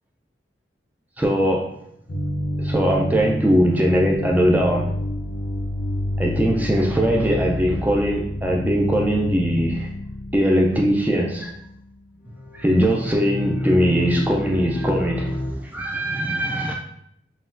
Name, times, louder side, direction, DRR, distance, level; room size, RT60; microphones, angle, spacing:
voice 1, 1.2-1.8 2.6-4.9 6.2-9.9 10.3-11.5 12.5-16.7, equal, 10° right, 0 dB, 0.4 m, -21 dB
sound 1, 2.1-12.0 12.3-15.5, left 1 dB, 50° left, 0.6 m, -28 dB
4.1 x 2.3 x 3.8 m, 0.74 s
head